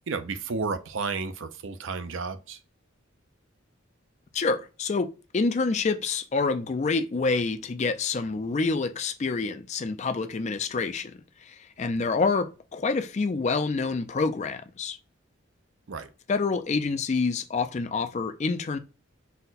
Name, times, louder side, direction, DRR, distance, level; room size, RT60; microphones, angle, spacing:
voice 1, 0.1-2.6 15.9-16.1, right 4 dB, 65° right, 0.5 m, -32 dB
voice 2, 4.3-11.2 11.5-15.0 16.3-18.8, left 4 dB, 35° left, 0.4 m, -27 dB
4.2 x 2.2 x 3.9 m
head